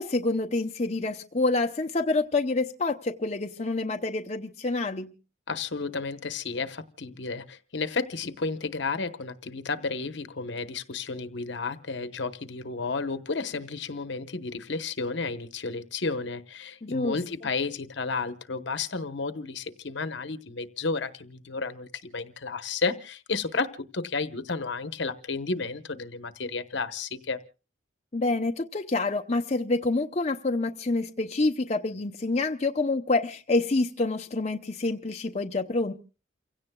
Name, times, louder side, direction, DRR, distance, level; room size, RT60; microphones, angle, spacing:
voice 1, 0.0-5.1 16.8-17.2 28.1-35.9, left 3 dB, 35° left, 4 dB, 0.7 m, -27 dB
voice 2, 5.5-27.4, left 4 dB, 65° left, 11 dB, 1.0 m, -32 dB
29.0 x 16.5 x 2.3 m, 0.35 s
head